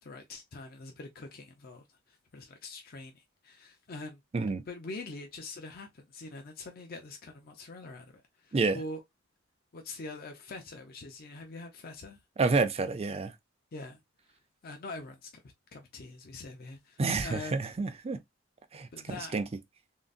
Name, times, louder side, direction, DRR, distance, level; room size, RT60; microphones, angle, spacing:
voice 1, 0.0-4.2 4.7-9.0 9.7-12.2 13.7-14.0 14.6-15.4 15.7-17.5 18.9-19.4, left 2 dB, 50° left, 0.5 m, -44 dB
voice 2, 12.4-13.3 17.0-18.2 18.7-18.9 19.3-19.4, right 3 dB, 30° right, 0.4 m, -28 dB
3.7 x 2.0 x 2.4 m
head